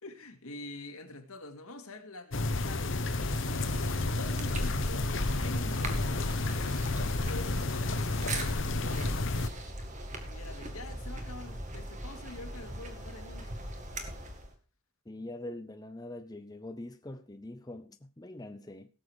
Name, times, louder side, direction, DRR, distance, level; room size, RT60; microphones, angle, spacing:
voice 1, 0.0-3.1 3.4-6.4 7.3-9.3 10.3-13.5, left 2 dB, 85° left, 2.2 m, -45 dB
sound 1, 2.3-9.5, left 2 dB, 60° left, 1.0 m, -31 dB
sound 2, 3.1-14.5, right 1 dB, 35° right, 2.0 m, -40 dB
voice 2, 15.1-18.9, left 1 dB, 15° left, 0.6 m, -43 dB
17.5 x 7.3 x 4.8 m
head